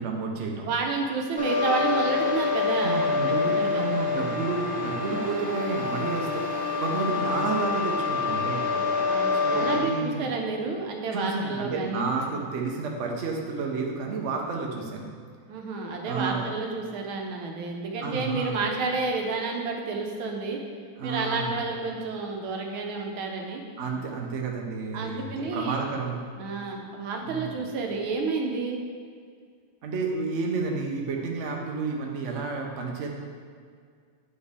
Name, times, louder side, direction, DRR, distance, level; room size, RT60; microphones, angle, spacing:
voice 1, 0.0-0.7 2.8-8.6 9.3-10.3 11.1-15.1 16.0-16.5 18.0-18.5 21.0-21.5 23.8-26.2 27.2-27.6 29.8-33.1, right 4 dB, 60° right, 0 dB, 0.8 m, -31 dB
voice 2, 0.6-3.0 3.6-3.9 8.7-12.0 15.5-20.6 21.0-23.6 24.9-25.8 26.4-28.8, right 4 dB, 85° right, 2 dB, 1.6 m, -30 dB
sound 1, 1.4-9.8, left 4 dB, 5° right, 0.6 m, -27 dB
8.8 x 4.4 x 3.5 m, 2.1 s
omnidirectional pair, 2.2 m